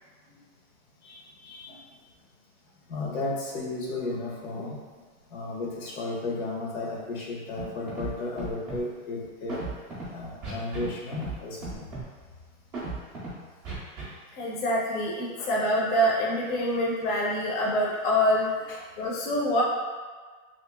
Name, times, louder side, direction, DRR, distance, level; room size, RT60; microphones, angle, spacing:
voice 1, 1.0-1.8 2.9-4.8 5.3-9.6 10.1-11.9 15.4-15.5 18.7-18.8, left 2 dB, 85° left, -3 dB, 1.2 m, -34 dB
Scratching (performance technique), 7.6-7.7 7.9-8.1 8.4-8.8 9.5-10.0 10.4-10.9 11.1-11.3 11.6-12.0 12.7-13.3 13.6-14.0, right 3 dB, 10° right, 0.4 m, -35 dB
voice 2, 14.3-18.6 19.0-19.6, equal, 40° left, -4 dB, 0.6 m, -25 dB
2.9 x 2.9 x 3.4 m, 1.5 s
supercardioid pair, 165°, 41 cm